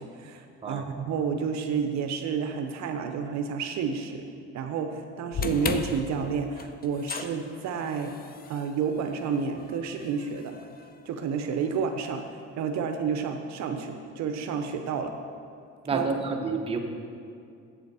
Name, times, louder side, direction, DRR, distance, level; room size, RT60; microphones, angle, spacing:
voice 1, 0.0-8.2 8.5-10.5 11.1-15.2 15.9-16.1, right 6 dB, 60° right, 6 dB, 0.6 m, -30 dB
sound 1, 5.3-11.6, left 5 dB, 30° left, 0.5 m, -37 dB
voice 2, 15.8-16.8, right 4 dB, 20° right, 2 dB, 0.9 m, -29 dB
8.0 x 7.4 x 4.7 m, 2.4 s
cardioid pair, 115°, 31 cm